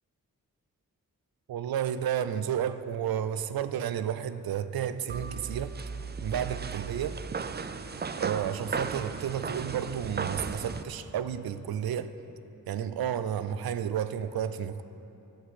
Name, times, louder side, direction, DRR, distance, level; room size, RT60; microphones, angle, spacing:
voice 1, 1.5-5.8 6.2-7.2 8.2-12.1 12.7-14.8, right 9 dB, 75° right, 13 dB, 0.5 m, -31 dB
sound 1, 5.1-10.8, right 5 dB, 30° right, 0.4 m, -35 dB
10.0 x 7.7 x 6.1 m, 2.9 s
cardioid pair, 45°, 36 cm